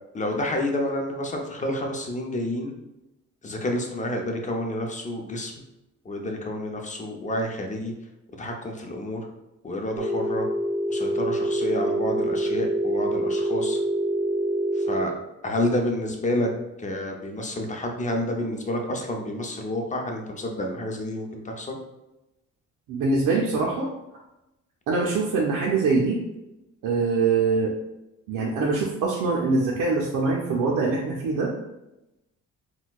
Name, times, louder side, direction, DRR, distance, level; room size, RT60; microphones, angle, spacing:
voice 1, 0.1-2.7 3.4-5.5 6.0-7.9 8.4-9.3 9.6-10.5 10.9-13.8 14.8-15.1 15.4-16.5 16.8-21.8, left 1 dB, 25° left, 2 dB, 0.6 m, -29 dB
Telephone, 10.0-15.0, right 1 dB, 20° right, 0.8 m, -25 dB
voice 2, 22.9-23.9 24.9-26.2 26.8-27.7 28.3-31.5, right 4 dB, 85° right, -3 dB, 0.6 m, -23 dB
4.2 x 2.2 x 2.3 m, 0.95 s
cardioid pair, 90°, 30 cm